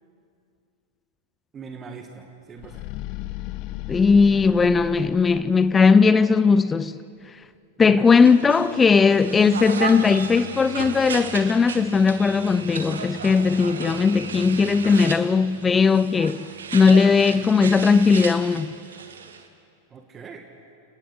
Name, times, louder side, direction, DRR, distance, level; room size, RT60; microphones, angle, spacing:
voice 1, 1.5-2.9 7.8-8.1 19.9-20.5, right 5 dB, 25° right, 1.7 m, -41 dB
sound 1, 2.6-5.9, left 15 dB, 40° left, 0.8 m, -35 dB
voice 2, 3.9-7.0 7.8-16.5 16.7-18.7, left 5 dB, 15° left, 0.5 m, -18 dB
sound 2, 8.1-19.5, right 6 dB, 65° right, 1.7 m, -34 dB
29.5 x 18.5 x 6.7 m
figure-of-eight pair, 90°, 0 cm